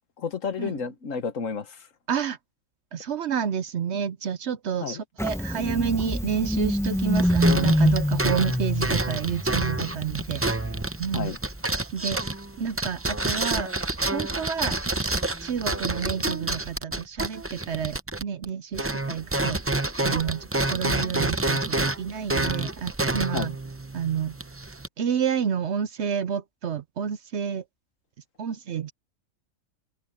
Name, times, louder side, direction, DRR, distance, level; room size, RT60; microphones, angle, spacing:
voice 1, 0.2-1.8 4.8-5.0 11.1-11.4 23.3-23.5, left 6 dB, 65° left, 1.6 m, -31 dB
voice 2, 2.9-10.4 11.0-11.3 11.9-12.2 12.6-13.7 14.1-14.8 15.4-23.5 23.9-24.3 25.0-27.6 28.4-28.9, right 7 dB, 60° right, 0.9 m, -29 dB
Engine starting, 5.2-11.7, equal, ahead, 1.0 m, -26 dB
sound 1, 6.8-18.5 18.7-24.9, right 2 dB, 20° right, 0.4 m, -28 dB
omnidirectional pair, 1.5 m